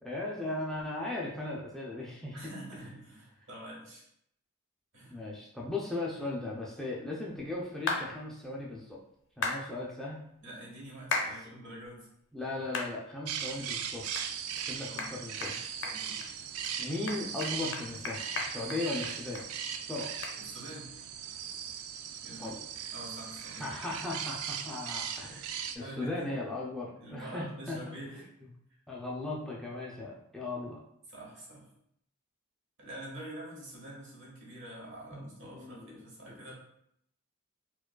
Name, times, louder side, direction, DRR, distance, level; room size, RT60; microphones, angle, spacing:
voice 1, 0.0-2.5 5.1-9.0 9.4-10.2 12.3-14.0 14.5-15.6 16.8-19.4 19.8-20.1 22.3-22.6 23.6-27.9 28.9-30.8 35.1-35.9, left 2 dB, ahead, -5 dB, 0.3 m, -37 dB
voice 2, 2.3-4.1 4.9-5.2 10.4-12.1 14.9-15.1 15.8-16.3 20.4-20.9 22.2-22.5 22.9-23.7 25.8-26.1 27.0-28.2 31.1-31.7 32.8-36.5, right 1 dB, 60° right, -4 dB, 1.3 m, -46 dB
sound 1, 7.9-8.0 9.4-9.6 11.1-11.3 11.8-11.9 12.7-12.9 13.4-13.5 14.1-14.3 14.6-14.7 15.0-15.1 15.4-15.5 15.8-16.3 16.6-16.7 17.1-19.4 19.7-19.8 20.2-20.4, left 3 dB, 65° left, 0.5 m, -34 dB
sound 2, 13.3-25.8, right 8 dB, 80° right, 0.3 m, -39 dB
4.6 x 2.2 x 2.2 m, 0.74 s
head